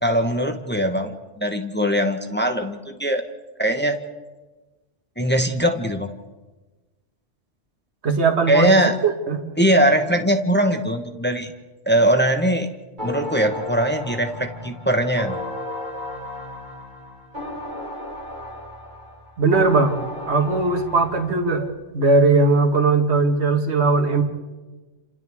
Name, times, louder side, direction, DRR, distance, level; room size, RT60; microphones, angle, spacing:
voice 1, 0.0-3.2 3.6-4.0 5.2-6.1 8.5-8.9 9.6-11.5 11.9-12.7 13.0-15.5, right 1 dB, 10° left, 5 dB, 1.1 m, -21 dB
voice 2, 8.0-9.4 19.4-21.7 21.9-24.2, right 3 dB, 65° right, 4 dB, 2.0 m, -19 dB
sound 1, 13.0-21.7, left 1 dB, 40° right, 2.1 m, -34 dB
29.5 x 27.0 x 3.6 m, 1.2 s
omnidirectional pair, 1.2 m